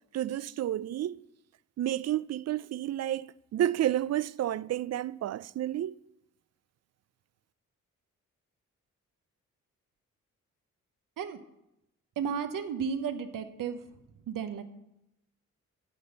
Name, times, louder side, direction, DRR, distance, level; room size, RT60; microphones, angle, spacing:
voice 1, 0.1-1.2 1.8-6.0, right 12 dB, 50° right, 0.4 m, -31 dB
voice 2, 12.2-13.8 14.3-14.6, right 7 dB, 75° right, 1.0 m, -33 dB
10.0 x 5.4 x 6.6 m
supercardioid pair, 50°, 33 cm